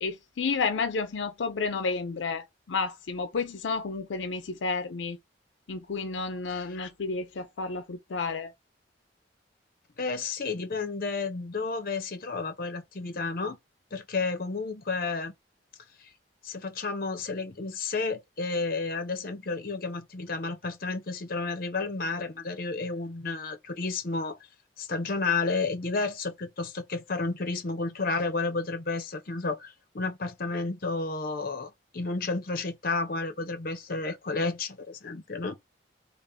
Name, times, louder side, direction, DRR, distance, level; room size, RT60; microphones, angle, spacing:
voice 1, 0.0-5.2 5.7-8.5, left 4 dB, 85° left, 0.5 m, -31 dB
voice 2, 10.0-13.6 13.9-15.3 16.0-16.1 16.4-24.4 24.8-35.6, left 3 dB, 50° left, 0.8 m, -31 dB
3.4 x 2.5 x 3.5 m
head